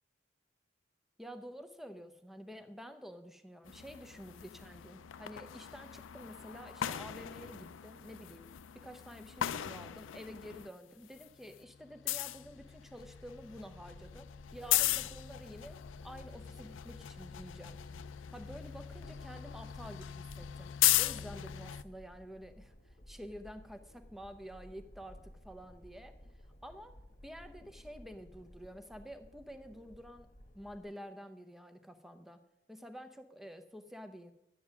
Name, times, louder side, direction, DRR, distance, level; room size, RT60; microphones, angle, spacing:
voice 1, 1.2-8.5 8.7-17.8 18.3-26.2 26.6-30.3 30.5-34.3, equal, ahead, 8 dB, 0.7 m, -49 dB
sound 1, 3.6-10.7 11.0-21.8, left 13 dB, 90° left, 0.4 m, -37 dB
sound 2, 12.4-30.8, equal, 35° left, 1.2 m, -56 dB
12.0 x 9.3 x 6.1 m, 0.92 s
head